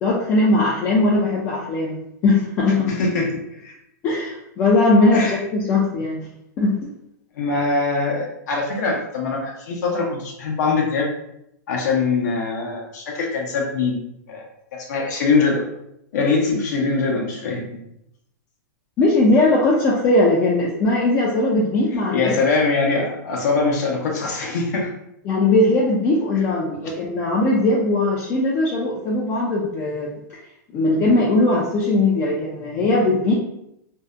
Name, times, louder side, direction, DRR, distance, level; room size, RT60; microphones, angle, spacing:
voice 1, 0.0-2.9 4.0-6.3 6.6-6.9 19.0-22.3 25.3-30.1 30.7-33.3, left 2 dB, 25° left, -4 dB, 0.3 m, -19 dB
voice 2, 2.9-3.3 3.6-3.7 5.1-5.4 7.4-11.1 11.7-14.0 14.3-14.4 14.7-15.6 16.1-17.8 22.1-24.9 26.3-26.4, left 4 dB, 65° left, 0 dB, 0.6 m, -22 dB
2.6 x 2.0 x 2.3 m, 0.80 s
supercardioid pair, 150°, 10 cm